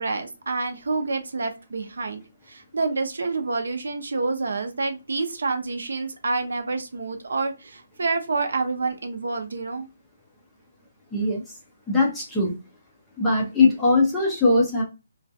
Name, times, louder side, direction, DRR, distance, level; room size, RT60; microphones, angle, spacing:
voice 1, 0.0-9.9, right 3 dB, 65° right, 7 dB, 0.6 m, -28 dB
voice 2, 11.1-11.4 11.9-12.6 13.2-14.8, left 3 dB, 5° left, -4 dB, 0.4 m, -20 dB
2.3 x 2.2 x 2.6 m, 0.28 s
hypercardioid pair, 180°, 0 cm